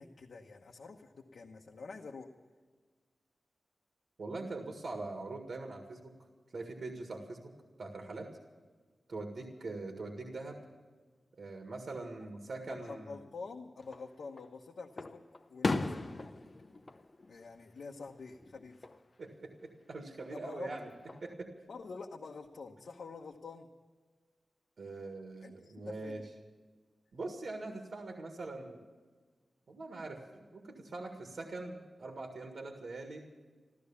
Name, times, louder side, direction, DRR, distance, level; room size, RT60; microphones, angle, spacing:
voice 1, 0.0-2.3 12.7-15.2 15.5-16.4 17.3-18.9 20.3-20.7 21.7-23.7 25.4-26.3, left 4 dB, 70° left, 0 dB, 1.0 m, -47 dB
voice 2, 4.2-6.1 6.5-7.5 7.8-8.3 9.1-10.6 11.3-13.1 19.2-20.9 21.2-21.5 24.8-26.2 27.1-28.8 29.7-33.3, right 2 dB, 60° right, 3 dB, 1.8 m, -43 dB
Fireworks, 13.8-14.5 15.0-18.1 18.4-19.0 20.5-21.3, left 2 dB, 30° left, 0.8 m, -38 dB
15.0 x 13.5 x 7.1 m, 1.5 s
wide cardioid pair, 150°, 0 cm